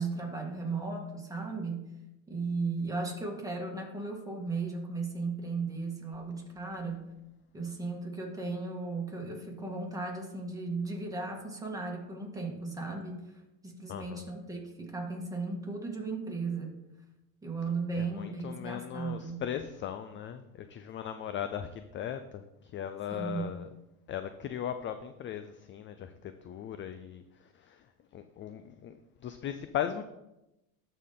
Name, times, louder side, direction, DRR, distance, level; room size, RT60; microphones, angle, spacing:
voice 1, 0.0-1.9 2.3-7.1 7.5-13.3 13.6-16.8 17.4-19.4 23.1-23.5, right 3 dB, 10° right, 0 dB, 2.0 m, -36 dB
voice 2, 13.9-14.3 18.0-23.7 24.1-27.2 27.5-27.8 28.1-29.0 29.2-30.0, left 9 dB, 30° left, 9 dB, 0.4 m, -38 dB
12.5 x 4.2 x 3.7 m, 0.93 s
supercardioid pair, 100°, 43 cm